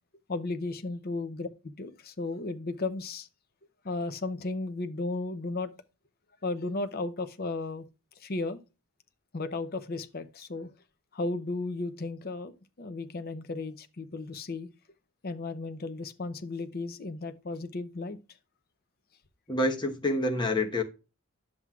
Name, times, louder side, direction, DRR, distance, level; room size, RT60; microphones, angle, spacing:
voice 1, 0.3-3.3 3.8-5.7 6.4-7.9 8.2-8.6 9.3-10.7 11.1-12.5 12.8-14.7 15.2-18.2, left 3 dB, 45° left, 0.6 m, -34 dB
voice 2, 19.5-20.8, left 1 dB, 20° left, 1.1 m, -27 dB
10.5 x 7.5 x 2.4 m
head